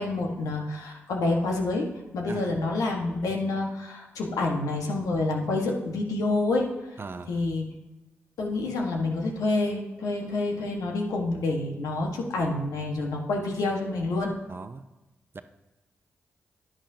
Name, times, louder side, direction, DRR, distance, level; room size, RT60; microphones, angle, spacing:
voice 1, 0.0-1.9 2.1-6.7 7.3-7.7 8.4-14.3, left 2 dB, 80° left, 0 dB, 1.5 m, -28 dB
voice 2, 7.0-7.3 14.5-14.8 15.3-15.4, right 4 dB, 40° right, 9 dB, 0.7 m, -38 dB
10.0 x 10.0 x 2.9 m, 1.1 s
supercardioid pair, 45°, 6 cm